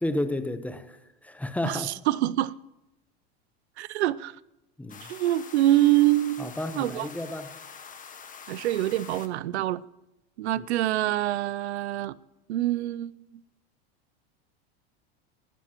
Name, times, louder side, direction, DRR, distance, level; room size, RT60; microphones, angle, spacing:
voice 1, 0.0-1.0 1.2-1.9 4.8-5.1 6.4-7.5 10.6-10.7, left 1 dB, 5° left, 0.9 m, -31 dB
voice 2, 1.6-2.5 3.8-4.4 5.0-6.5 6.8-7.1 8.5-9.8 10.4-12.2 12.5-13.4, right 15 dB, 90° right, 0.5 m, -25 dB
sound 1, 4.9-9.3, left 6 dB, 25° left, 1.4 m, -45 dB
20.0 x 11.5 x 3.0 m
supercardioid pair, 110°, 32 cm